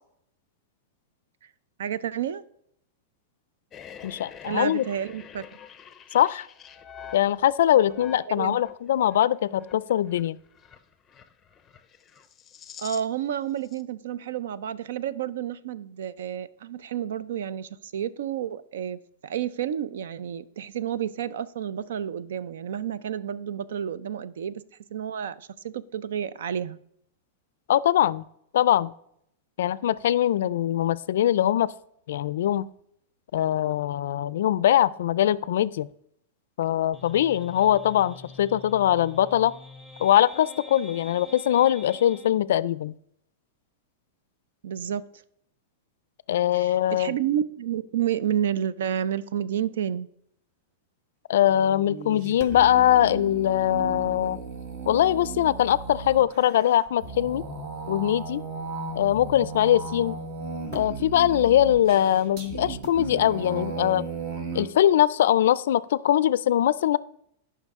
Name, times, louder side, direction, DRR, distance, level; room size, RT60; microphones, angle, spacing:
voice 1, 1.8-2.4 4.4-5.5 8.3-8.6 12.8-24.6 24.9-26.8 44.6-45.0 46.5-50.1, right 9 dB, 80° right, 18 dB, 0.5 m, -30 dB
sound 1, 3.7-13.3 13.5-13.8, left 8 dB, 20° left, 0.6 m, -46 dB
voice 2, 4.0-4.8 6.1-6.5 7.1-10.4 27.7-28.2 28.5-28.9 29.6-31.7 32.1-32.7 33.3-35.9 36.6-39.5 40.0-42.9 46.3-47.1 51.3-54.4 54.9-57.4 57.9-58.4 59.0-60.2 60.7-64.1 64.5-67.0, left 11 dB, 75° left, 19 dB, 0.3 m, -22 dB
sound 2, 36.9-42.3, left 2 dB, 10° right, 1.1 m, -46 dB
sound 3, 51.4-64.7, right 4 dB, 50° right, 1.4 m, -36 dB
13.5 x 5.7 x 3.6 m, 0.72 s
supercardioid pair, 150°, 0 cm